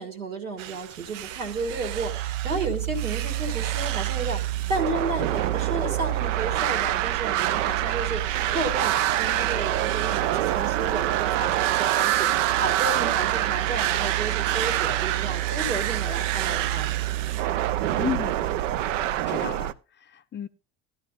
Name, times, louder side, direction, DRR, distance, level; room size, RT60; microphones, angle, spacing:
voice 1, 0.0-16.9, right 3 dB, 80° right, 2.3 m, -32 dB
sound 1, 0.6-19.7, right 13 dB, 65° right, 0.6 m, -26 dB
voice 2, 16.8-17.3 18.0-18.5 19.3-20.5, left 9 dB, 25° left, 0.6 m, -34 dB
14.5 x 11.5 x 2.6 m
figure-of-eight pair, 65°, 40 cm